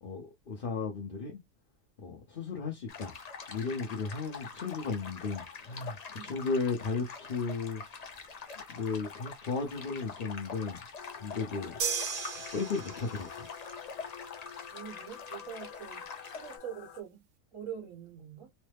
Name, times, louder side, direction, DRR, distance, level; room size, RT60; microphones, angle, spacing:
voice 1, 0.0-1.4 2.0-3.2 3.5-7.8 8.8-10.8 11.2-11.8 12.5-13.5, left 4 dB, 45° left, 0.8 m, -35 dB
sound 1, 2.9-16.6, left 5 dB, 60° left, 0.4 m, -45 dB
sound 2, 11.0-17.0, left 8 dB, 90° left, 1.2 m, -49 dB
sound 3, 11.8-13.4, right 7 dB, 80° right, 1.2 m, -35 dB
voice 2, 14.7-17.2 17.5-18.5, right 8 dB, 65° right, 1.3 m, -44 dB
3.1 x 2.0 x 3.3 m
omnidirectional pair, 1.5 m